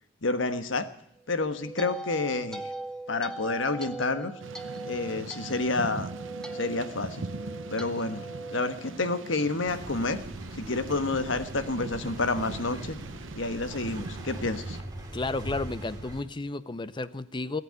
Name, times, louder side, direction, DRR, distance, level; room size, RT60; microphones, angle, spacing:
voice 1, 0.2-0.9 1.3-2.7 3.1-4.3 4.9-6.1 6.5-7.2 7.7-8.2 8.5-10.2 10.6-13.0 13.4-14.8, left 3 dB, 70° left, 10 dB, 1.3 m, -29 dB
sound 1, 1.3-9.6, right 2 dB, 5° left, 1.1 m, -40 dB
Thunder / Rain, 4.4-14.8, right 3 dB, 75° right, 0.8 m, -42 dB
sound 2, 9.7-16.2, right 1 dB, 20° right, 2.6 m, -41 dB
voice 2, 15.1-17.6, left 2 dB, 25° left, 16 dB, 0.6 m, -32 dB
17.5 x 8.2 x 9.4 m, 0.75 s
head